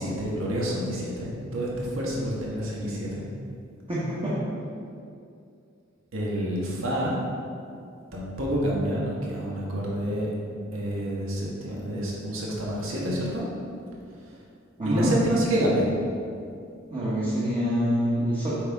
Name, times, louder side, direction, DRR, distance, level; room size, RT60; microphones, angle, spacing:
voice 1, 0.0-3.2 6.1-7.1 8.1-10.3 10.7-13.4 14.8-15.9, equal, 75° right, -4 dB, 1.5 m, -28 dB
voice 2, 3.9-4.3 14.8-15.1 16.9-18.5, equal, 25° right, -9 dB, 1.3 m, -26 dB
8.1 x 5.7 x 3.5 m, 2.4 s
head